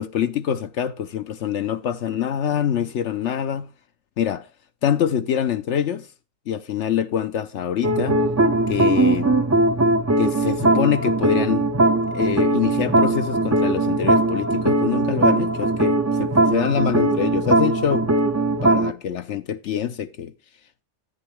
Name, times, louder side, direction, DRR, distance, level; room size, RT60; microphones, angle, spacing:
voice 1, 0.0-3.7 4.2-4.5 4.8-6.1 6.5-8.2 8.7-9.4 10.2-11.7 12.1-18.1 18.6-20.3, left 9 dB, 70° left, 0.9 m, -25 dB
sound 1, 7.8-18.9, right 2 dB, 20° right, 0.4 m, -20 dB
10.0 x 8.8 x 3.2 m
omnidirectional pair, 1.3 m